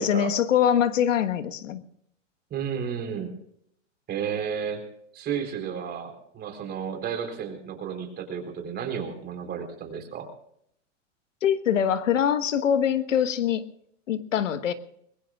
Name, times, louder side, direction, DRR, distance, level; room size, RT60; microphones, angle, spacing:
voice 1, 0.0-1.8 11.4-13.6 14.1-14.7, left 9 dB, 90° left, 11 dB, 1.4 m, -23 dB
voice 2, 2.5-3.3 4.1-4.8 5.1-10.3, right 7 dB, 25° right, 4 dB, 4.1 m, -32 dB
21.5 x 21.0 x 2.4 m, 0.70 s
hypercardioid pair, 135°, 37 cm